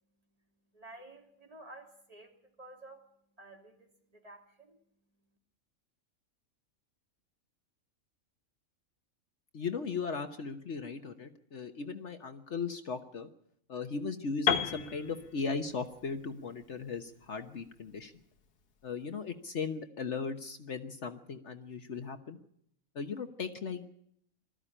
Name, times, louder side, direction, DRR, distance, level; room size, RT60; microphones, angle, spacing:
voice 1, 0.4-5.3, right 2 dB, 25° right, 2 dB, 2.9 m, -53 dB
voice 2, 9.5-13.3 13.7-18.1 18.8-22.4 22.9-23.9, left 5 dB, 55° left, 8 dB, 1.3 m, -37 dB
Piano, 14.5-18.4, left 7 dB, 80° left, 1.7 m, -35 dB
20.0 x 14.0 x 9.9 m, 0.70 s
omnidirectional pair, 1.5 m